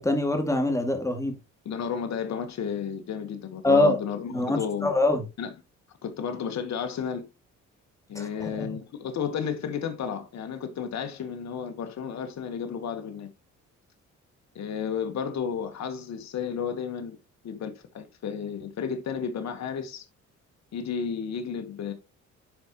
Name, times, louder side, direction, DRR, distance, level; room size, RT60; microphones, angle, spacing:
voice 1, 0.0-1.4 3.6-4.0 4.3-5.2 8.1-8.7, left 2 dB, 10° left, 2.3 m, -24 dB
voice 2, 1.6-4.9 5.4-5.5 6.0-7.3 8.1-13.3 14.5-17.2 17.4-20.1 20.7-21.9, left 7 dB, 60° left, 1.4 m, -32 dB
10.5 x 4.9 x 3.0 m
cardioid pair, 90°, 30 cm